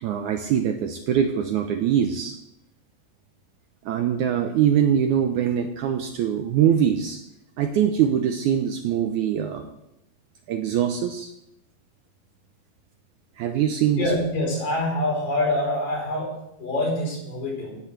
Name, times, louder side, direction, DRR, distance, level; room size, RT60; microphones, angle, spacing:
voice 1, 0.0-2.4 3.9-7.2 7.6-9.8 10.5-11.3 13.4-14.1, right 9 dB, 75° right, 6 dB, 1.9 m, -23 dB
voice 2, 14.0-17.8, left 1 dB, 65° left, -2 dB, 5.8 m, -25 dB
16.5 x 12.5 x 3.3 m, 0.81 s
omnidirectional pair, 4.2 m